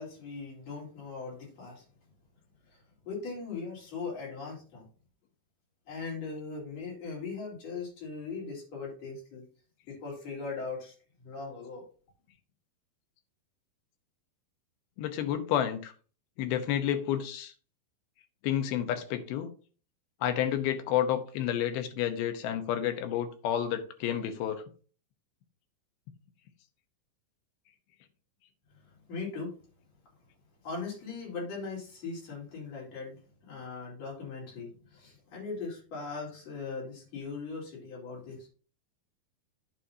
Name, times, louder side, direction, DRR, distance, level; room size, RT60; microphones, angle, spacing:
voice 1, 0.0-1.8 2.6-4.8 5.9-9.4 9.9-11.8 28.7-29.5 30.6-38.5, left 4 dB, 40° left, 4.5 m, -40 dB
voice 2, 15.0-15.9 16.4-17.5 18.4-19.5 20.2-24.6, left 10 dB, 75° left, 2.7 m, -30 dB
9.7 x 7.4 x 2.7 m
omnidirectional pair, 4.7 m